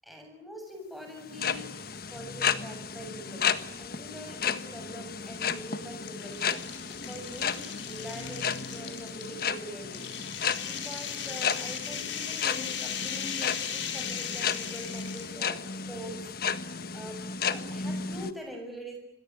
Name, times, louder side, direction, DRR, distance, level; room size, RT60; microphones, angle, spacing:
voice 1, 0.0-6.6 6.9-16.3 16.9-19.0, equal, ahead, 3 dB, 7.4 m, -44 dB
sound 1, 1.2-18.3, left 6 dB, 50° left, 1.4 m, -33 dB
sound 2, 3.3-3.7 4.2-4.3 5.3-15.4, left 8 dB, 65° left, 4.8 m, -38 dB
26.5 x 22.0 x 10.0 m, 0.70 s
head